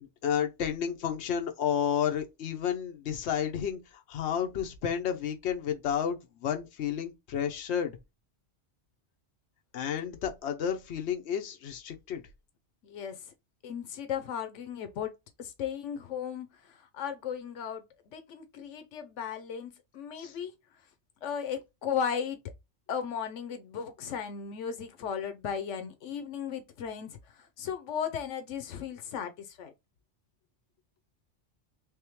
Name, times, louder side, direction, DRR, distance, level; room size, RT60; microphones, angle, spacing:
voice 1, 0.0-3.8 4.1-8.0 9.7-12.2 20.2-20.3, left 8 dB, 70° left, 1.0 m, -31 dB
voice 2, 12.8-13.2 13.6-15.1 15.4-17.8 18.1-20.5 21.2-22.4 22.9-29.7, left 7 dB, 85° left, 1.0 m, -36 dB
3.5 x 3.3 x 3.0 m
omnidirectional pair, 1.2 m